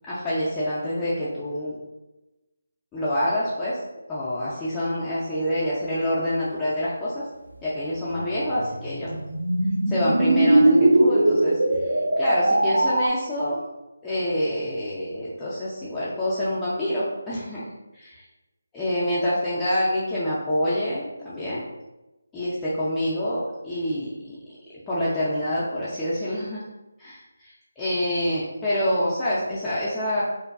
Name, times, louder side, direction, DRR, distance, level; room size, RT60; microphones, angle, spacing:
voice 1, 0.0-1.8 2.9-3.8 4.1-7.2 7.6-9.2 9.9-13.6 14.0-18.3 18.7-21.6 22.3-24.4 24.9-26.6 27.0-30.2, equal, 10° left, -10 dB, 0.3 m, -27 dB
sound 1, 8.1-13.1, right 1 dB, 70° right, 0.3 m, -20 dB
2.5 x 2.1 x 2.3 m, 1.1 s
figure-of-eight pair, 155°, 0 cm